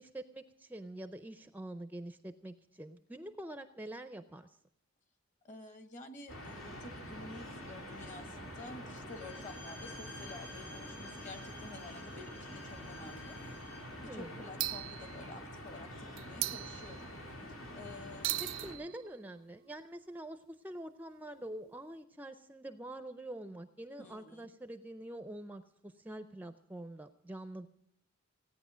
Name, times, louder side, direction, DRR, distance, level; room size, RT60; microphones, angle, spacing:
voice 1, 0.0-4.6 14.0-14.5 18.4-27.7, right 1 dB, 10° right, 9 dB, 0.5 m, -46 dB
voice 2, 5.4-13.4 14.0-17.1 17.7-18.3 24.0-24.5, left 2 dB, 40° left, 7 dB, 1.4 m, -50 dB
sound 1, 6.3-18.8, equal, 85° left, 3.2 m, -46 dB
sound 2, 7.1-8.2 9.0-9.1 9.3-9.4 10.8-10.9 11.4-11.8 12.2-12.3 13.0-13.5 14.6-15.7 16.2-17.5 18.2-22.0, right 16 dB, 75° right, 0.5 m, -42 dB
Bowed string instrument, 9.1-13.9, left 1 dB, 65° left, 6.4 m, -53 dB
17.0 x 9.6 x 6.2 m, 0.78 s
head